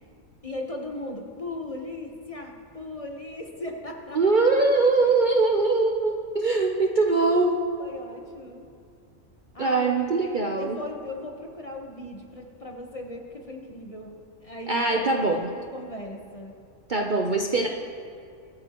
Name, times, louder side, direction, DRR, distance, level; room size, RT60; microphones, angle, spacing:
voice 1, 0.4-4.2 4.5-4.6 7.8-8.6 9.5-10.1 10.6-14.2 14.4-16.5, left 1 dB, 30° left, 1 dB, 1.0 m, -37 dB
voice 2, 4.1-7.6 9.6-10.8 14.7-15.5 16.9-17.7, right 3 dB, 45° right, 1 dB, 0.7 m, -22 dB
24.0 x 8.7 x 3.0 m, 2.4 s
omnidirectional pair, 1.4 m